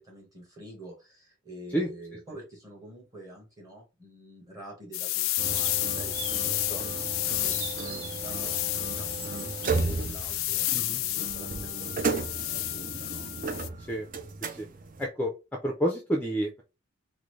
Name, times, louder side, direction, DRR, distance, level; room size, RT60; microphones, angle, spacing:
voice 1, 0.0-13.9, right 1 dB, 15° right, 1.4 m, -48 dB
sound 1, 4.9-13.7, left 16 dB, 75° left, 0.3 m, -31 dB
sound 2, 5.3-10.5, right 7 dB, 85° right, 0.6 m, -45 dB
sound 3, 5.4-15.1, right 4 dB, 40° right, 0.4 m, -35 dB
voice 2, 15.0-15.3 15.6-16.6, equal, 10° left, 0.5 m, -29 dB
3.8 x 2.1 x 3.1 m
head